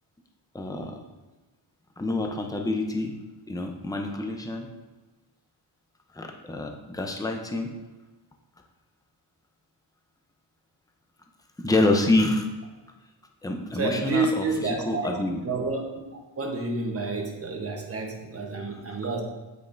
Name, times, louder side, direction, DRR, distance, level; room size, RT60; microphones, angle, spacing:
voice 1, 0.5-1.0 2.0-3.2 3.5-4.7 6.1-7.7 11.6-12.5 13.4-15.4, left 2 dB, 10° left, 3 dB, 0.7 m, -27 dB
voice 2, 13.7-15.1 15.4-15.8 16.1-19.2, right 3 dB, 30° right, 1 dB, 1.1 m, -29 dB
8.4 x 5.3 x 2.6 m, 1.2 s
wide cardioid pair, 95°, 47 cm